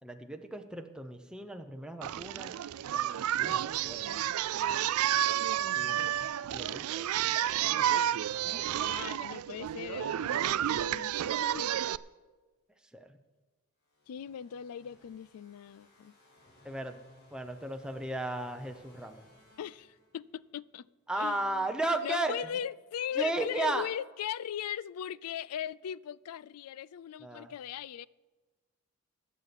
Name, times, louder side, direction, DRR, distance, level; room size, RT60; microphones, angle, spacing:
voice 1, 0.0-2.5 3.4-4.6 5.7-7.1 8.3-9.0 12.9-13.1 16.6-17.0 17.3-19.2 21.1-22.4 23.2-23.9 27.2-27.5, right 2 dB, 5° right, 0.7 m, -35 dB
Singing, 2.0-12.0, right 11 dB, 70° right, 0.3 m, -31 dB
voice 2, 8.8-11.8 14.1-16.1 19.6-20.9 21.2-21.7 22.0-28.1, left 9 dB, 80° left, 0.4 m, -39 dB
sound 1, 13.8-20.5, left 1 dB, 50° left, 4.7 m, -61 dB
20.5 x 8.2 x 4.2 m
head